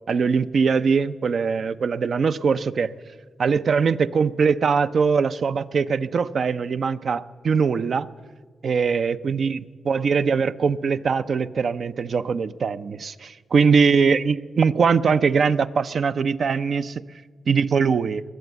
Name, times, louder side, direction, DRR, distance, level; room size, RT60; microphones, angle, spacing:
voice 1, 0.1-2.9 3.4-8.1 8.6-17.0 17.5-18.2, right 5 dB, 65° right, 12 dB, 0.5 m, -21 dB
21.5 x 7.9 x 8.1 m, 1.5 s
cardioid pair, 70°, 0 cm